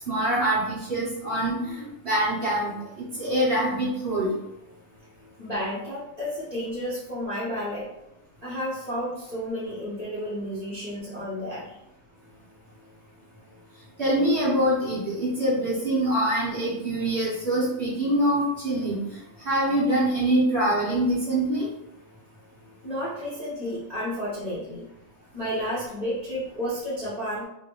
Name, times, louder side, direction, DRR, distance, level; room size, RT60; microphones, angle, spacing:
voice 1, 0.1-2.7 3.2-4.3 14.0-19.2 19.4-21.7, right 1 dB, 40° right, -7 dB, 1.1 m, -24 dB
voice 2, 5.4-7.9 8.4-11.8 22.8-24.9 25.3-27.4, equal, 80° left, -9 dB, 0.3 m, -31 dB
3.2 x 2.9 x 3.0 m, 0.86 s
omnidirectional pair, 2.4 m